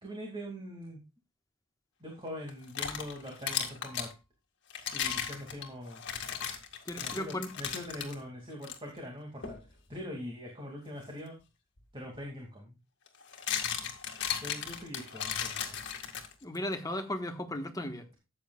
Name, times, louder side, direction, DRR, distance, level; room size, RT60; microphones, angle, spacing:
voice 1, 0.0-1.0 2.0-4.1 4.9-6.0 7.0-9.5 9.9-11.4 11.9-12.7 14.4-15.8, equal, 25° right, 0 dB, 2.3 m, -42 dB
sound 1, 2.5-4.1 4.7-8.2 8.6-8.8 9.4-9.7 11.8-11.9 13.1-16.6, left 8 dB, 55° left, 1.9 m, -36 dB
voice 2, 6.8-7.5 16.4-18.0, left 1 dB, 15° left, 5 dB, 1.3 m, -36 dB
13.5 x 8.6 x 2.3 m, 0.26 s
head